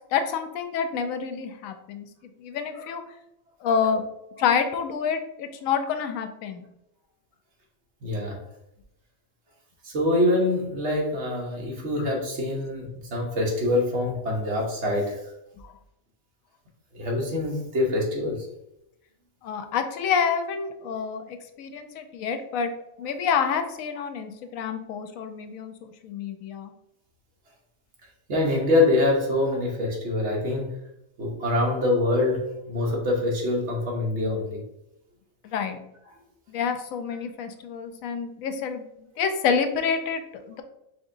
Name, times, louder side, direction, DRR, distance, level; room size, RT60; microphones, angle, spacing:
voice 1, 0.1-2.1 2.4-3.1 3.6-4.0 4.4-6.6 19.4-22.7 23.0-26.7 35.4-35.8 36.5-38.8 39.2-40.6, left 6 dB, 85° left, 7 dB, 1.0 m, -28 dB
voice 2, 8.0-8.4 9.8-15.3 16.9-18.5 28.3-30.8 31.2-34.6, left 2 dB, 60° right, -1 dB, 1.3 m, -25 dB
4.7 x 3.6 x 2.6 m, 0.84 s
omnidirectional pair, 1.4 m